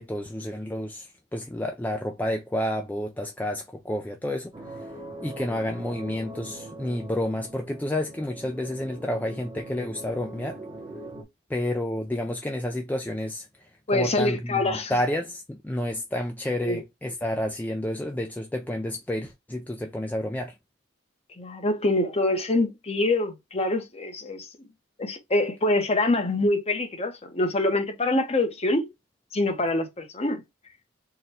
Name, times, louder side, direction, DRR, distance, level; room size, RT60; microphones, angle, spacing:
voice 1, 0.0-4.9 5.2-10.6 11.5-20.6, left 1 dB, 10° left, 0.3 m, -30 dB
sound 1, 4.5-11.2, right 1 dB, 25° right, 0.9 m, -42 dB
voice 2, 13.9-15.0 16.6-16.8 21.4-24.5 25.0-28.9 29.3-30.4, left 2 dB, 30° left, 0.9 m, -25 dB
3.9 x 2.2 x 4.1 m
head